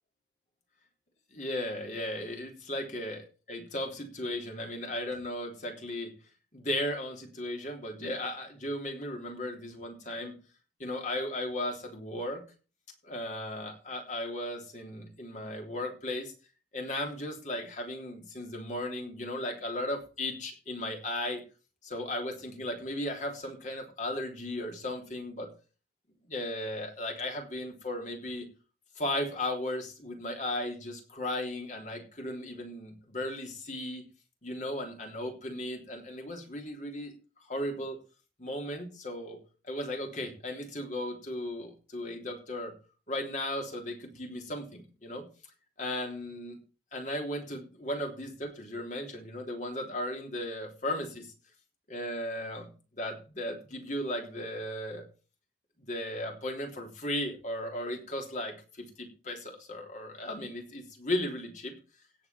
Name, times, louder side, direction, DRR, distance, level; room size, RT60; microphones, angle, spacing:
voice 1, 1.3-6.1 6.5-10.4 10.8-12.4 13.0-16.3 16.7-21.4 21.8-25.5 26.3-28.5 29.0-34.1 34.4-37.1 37.5-38.0 38.4-39.4 39.6-42.7 43.1-45.3 45.8-46.6 46.9-51.3 51.9-52.7 52.9-55.0 55.8-61.7, left 1 dB, 45° left, 2 dB, 3.4 m, -36 dB
16.5 x 7.4 x 4.4 m, 0.35 s
head